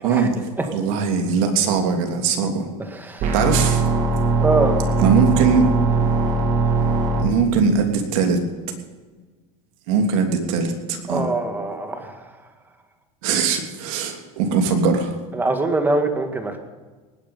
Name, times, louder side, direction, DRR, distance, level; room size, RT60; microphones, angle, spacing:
voice 1, 0.0-0.4 0.7-2.7 3.3-3.8 5.0-5.7 7.2-8.4 9.9-11.3 13.2-15.2, right 5 dB, 75° right, 3 dB, 3.0 m, -20 dB
voice 2, 2.9-3.3 4.4-4.7 11.1-12.2 15.3-16.6, right 2 dB, 10° right, 6 dB, 2.0 m, -23 dB
sound 1, 3.2-7.2, right 3 dB, 45° right, 2.5 m, -20 dB
19.5 x 10.0 x 5.5 m, 1.4 s
supercardioid pair, 135°, 17 cm